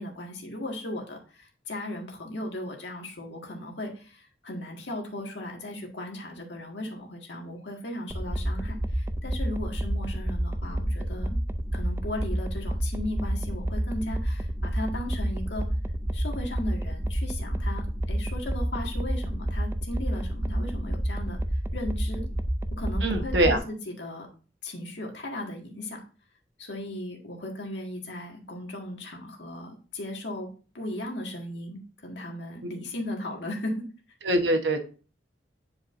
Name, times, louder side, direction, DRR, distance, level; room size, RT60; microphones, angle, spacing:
voice 1, 0.0-11.4 11.7-15.7 16.1-21.4 21.7-22.3 22.7-24.3 24.6-26.0 26.6-30.5 30.7-33.8, left 1 dB, 75° left, 1 dB, 1.8 m, -36 dB
sound 1, 8.1-23.6, right 1 dB, 15° right, 0.4 m, -29 dB
voice 2, 23.0-23.6 32.6-32.7 34.2-34.8, right 1 dB, 70° right, 5 dB, 1.1 m, -23 dB
9.9 x 4.8 x 2.6 m, 0.37 s
head